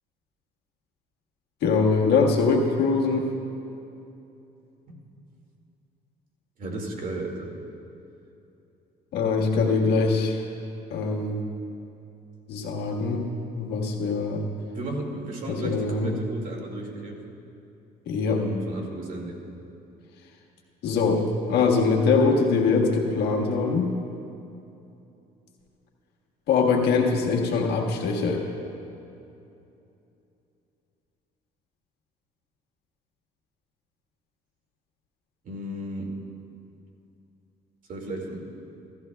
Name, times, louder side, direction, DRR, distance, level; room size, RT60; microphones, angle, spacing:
voice 1, 1.6-3.3 9.1-10.4 10.9-11.4 12.5-13.3 13.5-14.4 15.5-16.1 18.1-18.4 20.8-21.2 21.5-23.9 26.5-28.4, left 4 dB, 80° left, 0 dB, 1.6 m, -23 dB
voice 2, 6.6-7.5 14.7-17.2 18.3-19.4 35.4-36.1 37.9-38.4, right 1 dB, 50° right, 0 dB, 2.2 m, -34 dB
17.0 x 13.5 x 2.3 m, 2.8 s
cardioid pair, 110°, 17 cm